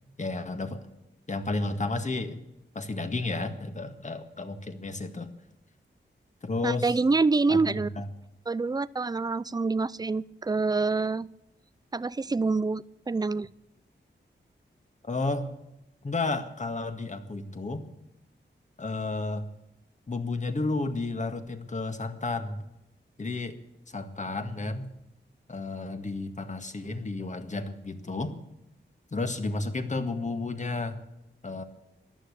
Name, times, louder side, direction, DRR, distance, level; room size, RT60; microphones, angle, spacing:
voice 1, 0.2-0.9 1.3-2.4 2.8-5.3 6.4-7.0 7.5-8.1 15.0-15.5 16.0-17.8 18.8-19.5 20.1-22.6 23.2-23.6 23.9-24.9 25.5-28.4 29.1-31.0 31.4-31.6, left 3 dB, 40° left, 8 dB, 1.8 m, -32 dB
voice 2, 6.6-7.9 8.5-11.3 11.9-13.5, right 3 dB, 20° right, 19 dB, 0.5 m, -26 dB
14.0 x 12.0 x 8.6 m, 0.88 s
wide cardioid pair, 100°, 19 cm